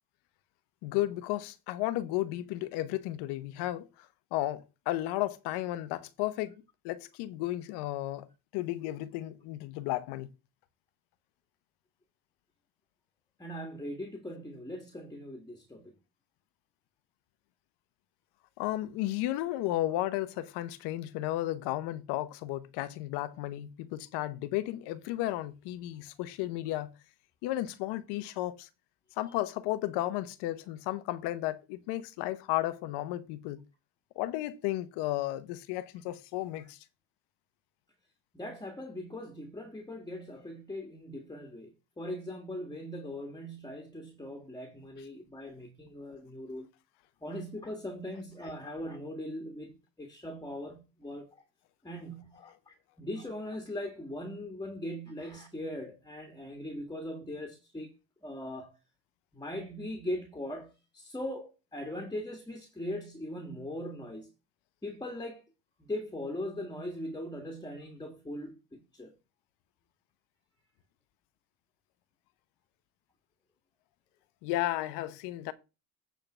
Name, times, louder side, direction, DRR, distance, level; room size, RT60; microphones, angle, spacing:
voice 1, 0.8-4.1 4.3-8.3 8.5-10.3 18.6-26.9 27.4-28.7 29.2-33.6 34.2-36.8 74.4-75.5, left 15 dB, 85° left, 1.0 m, -33 dB
voice 2, 13.4-15.9 38.3-46.7 47.2-51.4 51.8-57.9 58.2-58.7 59.3-64.3 64.8-65.4 65.8-69.1, left 1 dB, 10° left, 1.7 m, -40 dB
9.2 x 3.8 x 6.1 m
supercardioid pair, 90°, 40 cm